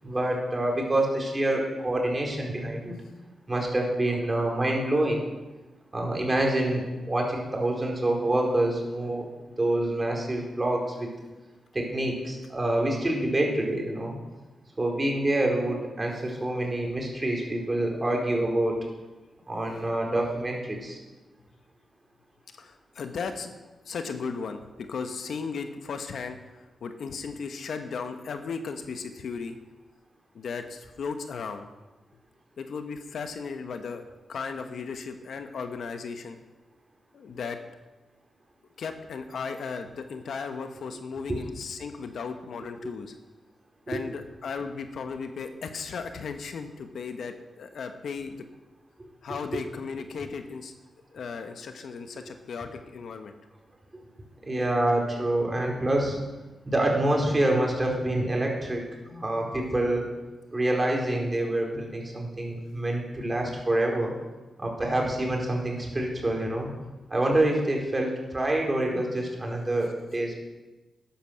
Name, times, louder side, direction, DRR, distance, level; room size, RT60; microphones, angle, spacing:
voice 1, 0.0-2.9 3.5-5.2 5.9-9.3 9.6-11.1 11.7-14.1 14.8-18.7 19.5-21.0 41.3-41.4 42.8-42.9 43.9-44.0 54.4-56.2 56.7-58.8 59.1-60.0 60.5-64.1 64.6-66.7 67.1-70.3, right 1 dB, 25° right, 0 dB, 4.3 m, -26 dB
voice 2, 22.5-23.5 23.8-29.6 30.3-31.7 32.6-34.0 34.3-36.4 37.1-37.6 38.8-43.1 43.9-48.5 49.2-50.7 51.1-53.3 66.1-66.2 66.8-66.9, left 5 dB, 75° left, 7 dB, 1.2 m, -36 dB
13.0 x 10.5 x 6.5 m, 1.1 s
cardioid pair, 70°, 0 cm